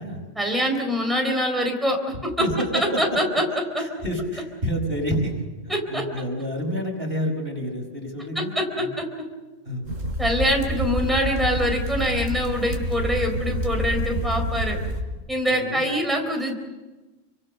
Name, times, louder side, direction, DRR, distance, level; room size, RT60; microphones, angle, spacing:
voice 1, 0.4-2.5 2.7-3.4 5.7-6.0 8.4-9.0 10.2-14.8 15.3-16.5, equal, ahead, 2 dB, 4.0 m, -24 dB
voice 2, 2.4-3.0 3.8-8.9 9.7-9.8 15.5-15.8, equal, 50° right, 2 dB, 5.3 m, -29 dB
sound 1, 9.8-15.0, equal, 80° right, 4.8 m, -28 dB
29.0 x 24.5 x 6.7 m, 1.2 s
omnidirectional pair, 1.3 m